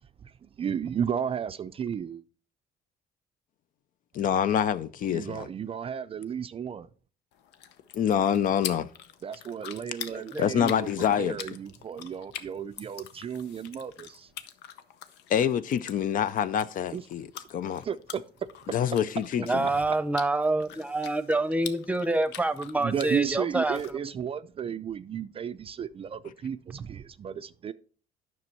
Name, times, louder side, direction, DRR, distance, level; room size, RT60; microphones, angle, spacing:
voice 1, 0.2-2.2 5.1-6.9 9.2-10.9 11.2-14.3 16.9-17.0 17.8-18.2 22.8-27.7, right 8 dB, 35° right, 0.4 m, -33 dB
voice 2, 4.1-5.5 7.9-8.9 10.4-11.4 15.3-17.8 18.7-19.7, left 9 dB, 55° left, 0.5 m, -26 dB
sound 1, 7.3-23.9, left 9 dB, 85° left, 0.8 m, -45 dB
voice 3, 10.1-10.4 19.3-24.1, right 2 dB, 10° right, 0.8 m, -27 dB
9.6 x 6.2 x 4.4 m
cardioid pair, 110°, 17 cm